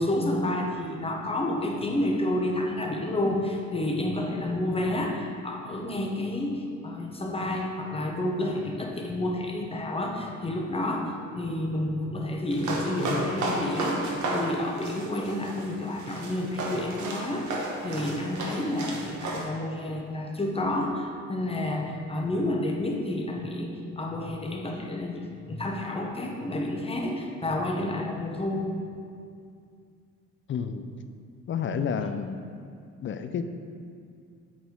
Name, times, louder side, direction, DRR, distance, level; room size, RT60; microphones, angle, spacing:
voice 1, 0.0-17.6 17.8-25.2 25.5-28.7, left 1 dB, 20° left, 0 dB, 0.9 m, -30 dB
sound 1, 12.5-19.4, right 2 dB, 70° right, 1.1 m, -33 dB
voice 2, 30.5-30.9 31.5-32.4 33.0-33.4, left 6 dB, 40° left, 9 dB, 0.4 m, -30 dB
8.4 x 4.3 x 3.7 m, 2.3 s
cardioid pair, 90°, 30 cm